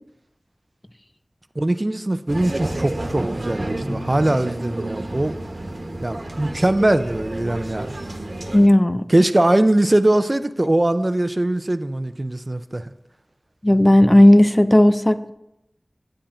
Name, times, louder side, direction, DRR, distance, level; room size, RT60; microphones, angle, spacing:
voice 1, 1.6-5.4 6.0-8.0 9.1-12.9, right 1 dB, 35° right, 11 dB, 0.5 m, -21 dB
sound 1, 2.3-8.7, right 1 dB, 60° right, 1.1 m, -30 dB
voice 2, 8.5-9.0 13.6-15.3, left 1 dB, 20° left, 11 dB, 0.4 m, -13 dB
8.7 x 7.8 x 4.3 m, 0.86 s
wide cardioid pair, 45°, 0 cm